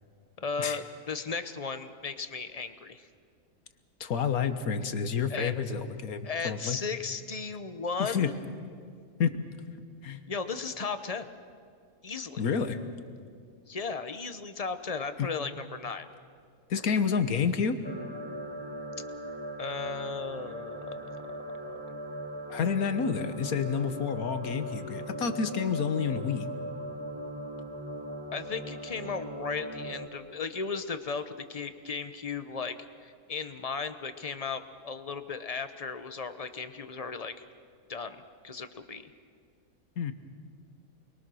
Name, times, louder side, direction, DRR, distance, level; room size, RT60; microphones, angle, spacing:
voice 1, 0.4-3.1 5.3-5.5 6.2-8.4 10.3-11.3 12.0-12.4 13.7-16.1 16.9-17.0 19.6-21.4 21.6-22.0 28.3-32.8 33.0-37.4 37.9-38.2 38.4-39.1, left 5 dB, 30° left, 10 dB, 0.8 m, -36 dB
voice 2, 4.0-6.8 8.0-8.3 9.2-9.4 10.0-10.2 12.4-12.8 15.2-15.3 16.7-17.8 22.5-26.5 40.0-40.1, left 6 dB, 85° left, 9 dB, 1.6 m, -29 dB
sound 1, 17.8-30.1, equal, 15° right, 1.4 m, -39 dB
29.0 x 22.0 x 6.3 m, 2.2 s
omnidirectional pair, 1.5 m